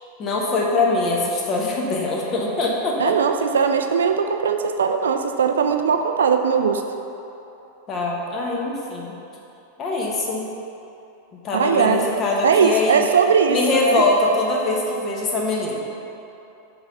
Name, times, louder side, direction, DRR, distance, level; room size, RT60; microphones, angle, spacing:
voice 1, 0.2-3.1 7.9-9.1 9.8-10.4 11.4-13.1 13.5-15.8, left 2 dB, 30° left, -2 dB, 1.1 m, -23 dB
voice 2, 3.0-6.8 11.5-12.1 12.4-14.0, right 6 dB, 65° right, 6 dB, 0.4 m, -19 dB
6.2 x 3.9 x 5.6 m, 3.0 s
figure-of-eight pair, 90°, 0 cm